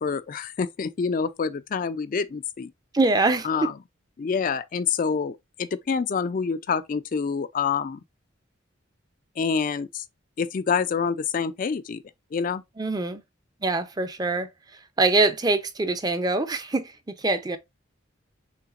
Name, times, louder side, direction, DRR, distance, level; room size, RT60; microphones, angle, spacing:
voice 1, 0.0-2.7 3.4-3.7 4.2-8.0 9.4-10.0 10.4-12.0 12.3-12.6, left 5 dB, 40° left, 0.3 m, -27 dB
voice 2, 2.9-3.7 12.8-13.2 13.6-14.5 15.0-16.9 17.2-17.6, right 3 dB, 20° right, 0.5 m, -23 dB
5.8 x 3.5 x 2.4 m
head